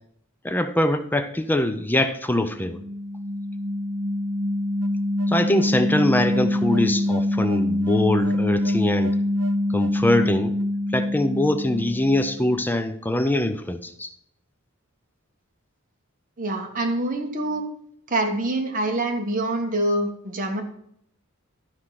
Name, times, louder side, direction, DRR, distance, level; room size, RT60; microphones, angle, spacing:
voice 1, 0.4-2.8 5.3-9.2 9.7-10.6 10.9-14.1, left 1 dB, 10° left, 0.5 m, -23 dB
sound 1, 2.5-12.6, left 1 dB, 90° right, 0.8 m, -25 dB
voice 2, 16.4-17.6 18.1-20.6, right 1 dB, 40° right, 1.5 m, -25 dB
12.0 x 4.9 x 5.7 m
head